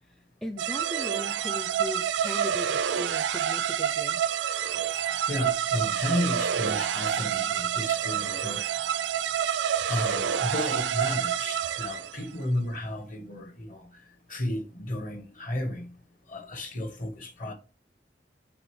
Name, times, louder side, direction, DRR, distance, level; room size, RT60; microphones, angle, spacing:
voice 1, 0.4-4.2, left 1 dB, 5° left, 0.4 m, -38 dB
sound 1, 0.6-12.3, right 9 dB, 80° right, 0.4 m, -28 dB
voice 2, 5.3-8.7 9.9-13.9 14.3-15.9 16.3-17.5, left 1 dB, 50° left, 1.3 m, -33 dB
7.8 x 3.9 x 3.2 m
head